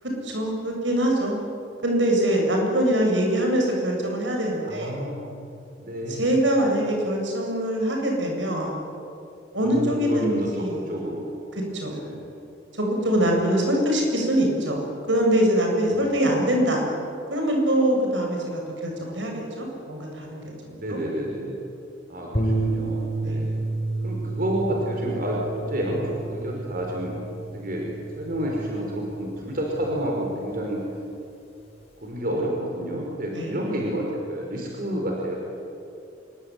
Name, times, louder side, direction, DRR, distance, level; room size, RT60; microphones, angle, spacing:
voice 1, 0.2-1.3 1.8-5.0 6.2-8.7 9.5-10.8 11.6-12.0 12.8-14.8 15.1-16.9 17.3-21.0 23.2-23.4 33.3-33.5, right 1 dB, 80° right, 1 dB, 7.8 m, -23 dB
voice 2, 4.6-5.3 5.8-6.3 9.6-11.3 11.9-12.2 13.2-13.3 15.9-16.2 20.8-21.6 22.1-23.5 24.0-27.2 27.5-27.9 28.2-30.8 32.0-35.4, right 1 dB, 50° right, -1 dB, 5.1 m, -29 dB
sound 1, 22.3-30.7, right 2 dB, 35° left, 4.0 m, -31 dB
26.5 x 23.5 x 9.3 m, 2.6 s
head